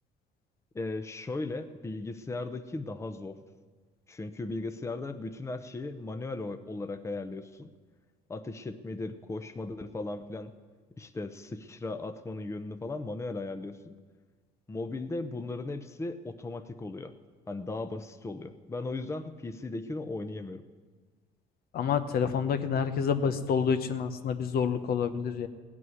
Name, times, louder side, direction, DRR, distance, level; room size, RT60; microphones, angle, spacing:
voice 1, 0.7-3.4 4.1-7.7 8.3-10.5 11.0-14.0 14.7-17.1 17.5-20.6, left 2 dB, 15° left, 9 dB, 0.7 m, -37 dB
voice 2, 21.7-25.5, left 6 dB, 65° left, 9 dB, 0.9 m, -28 dB
17.0 x 6.1 x 9.4 m, 1.5 s
cardioid pair, 110°, 17 cm